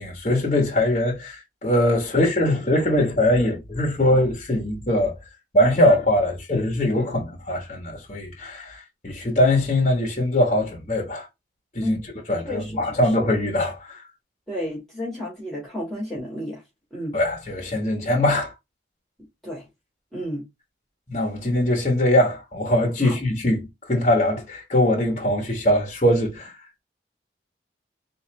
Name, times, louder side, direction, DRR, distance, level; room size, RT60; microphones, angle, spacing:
voice 1, 0.0-5.1 5.5-11.3 11.7-12.0 12.3-14.0 17.1-18.5 21.1-26.6, left 1 dB, 35° left, 1.2 m, -22 dB
voice 2, 12.5-13.1 14.5-16.6 16.9-17.2 19.4-19.6 20.1-20.4 23.0-23.2, equal, ahead, 1.8 m, -31 dB
3.9 x 2.8 x 3.1 m
head